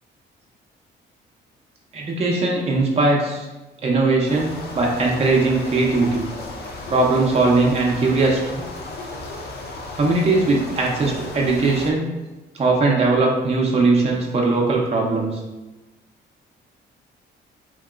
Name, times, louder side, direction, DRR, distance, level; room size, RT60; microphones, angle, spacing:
voice 1, 1.9-3.5 3.8-6.2 6.9-8.6 9.9-12.1 12.5-15.4, right 3 dB, 30° right, -1 dB, 0.5 m, -19 dB
sound 1, 4.3-11.9, left 2 dB, 55° left, 0.6 m, -35 dB
2.9 x 2.8 x 2.3 m, 1.1 s
cardioid pair, 90°, 20 cm